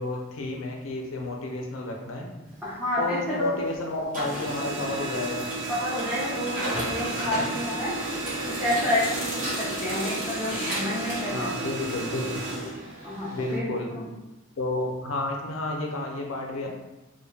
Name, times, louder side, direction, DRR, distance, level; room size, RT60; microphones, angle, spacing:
voice 1, 0.0-2.3 3.0-5.5 7.2-7.4 9.9-10.0 11.3-12.3 13.3-13.9 14.6-16.7, left 2 dB, 70° left, 0 dB, 0.5 m, -31 dB
Printer, 2.5-3.7 4.0-13.6, right 2 dB, 40° right, 0.8 m, -32 dB
voice 2, 2.6-3.8 5.7-7.9 8.4-11.8 13.0-13.6 13.9-14.1, left 1 dB, 5° right, -9 dB, 0.6 m, -29 dB
2.2 x 2.2 x 3.2 m, 1.0 s
head